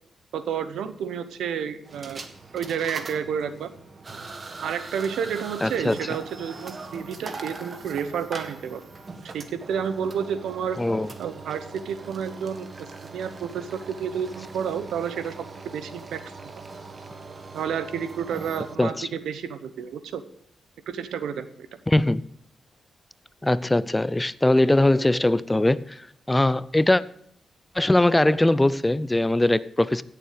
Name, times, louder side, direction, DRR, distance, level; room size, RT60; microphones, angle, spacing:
voice 1, 0.3-2.3 2.5-3.7 4.6-8.8 9.3-10.8 11.2-16.5 17.5-20.2 20.9-21.7, right 7 dB, 85° right, 0.9 m, -30 dB
sound 1, 1.8-18.8, right 3 dB, 40° right, 1.6 m, -41 dB
voice 2, 5.6-6.0 10.8-11.1 18.8-19.1 21.9-22.2 23.4-27.0 27.7-30.0, left 1 dB, 15° left, 0.5 m, -21 dB
16.0 x 7.1 x 5.0 m
cardioid pair, 60°, 0 cm